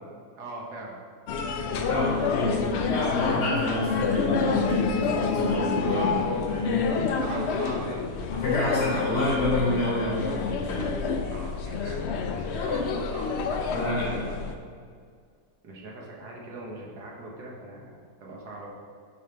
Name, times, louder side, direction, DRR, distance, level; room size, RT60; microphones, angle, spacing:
voice 1, 0.4-1.0 5.8-6.3 6.9-8.2 11.3-12.1 12.4-14.2 14.8-15.0 15.6-18.7, right 1 dB, 80° right, -3 dB, 1.9 m, -39 dB
sound 1, 1.3-14.5, left 5 dB, 70° left, 0.6 m, -28 dB
voice 2, 1.7-6.1 6.5-6.8 8.3-10.9 13.7-14.1, left 1 dB, 90° left, -6 dB, 2.2 m, -28 dB
9.7 x 5.2 x 3.4 m, 2.1 s
omnidirectional pair, 1.7 m